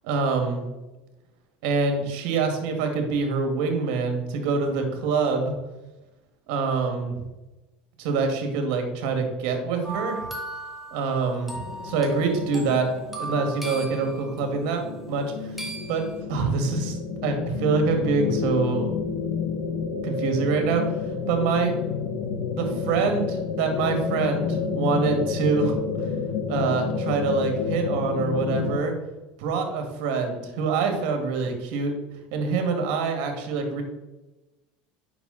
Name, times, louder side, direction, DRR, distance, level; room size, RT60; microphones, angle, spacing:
voice 1, 0.0-0.7 1.6-5.6 6.5-7.2 8.0-10.3 10.9-12.9 13.2-15.5 15.9-17.0 17.2-18.9 20.0-21.0 21.3-21.8 22.5-26.1 26.5-29.0 29.4-31.9 32.3-33.8, right 4 dB, 70° right, 5 dB, 2.1 m, -25 dB
sound 1, 9.8-14.6 15.6-16.1, right 2 dB, 5° right, 2.3 m, -37 dB
sound 2, 11.6-28.8, left 5 dB, 70° left, 1.2 m, -30 dB
9.0 x 6.2 x 4.1 m, 1.1 s
supercardioid pair, 95°, 4 cm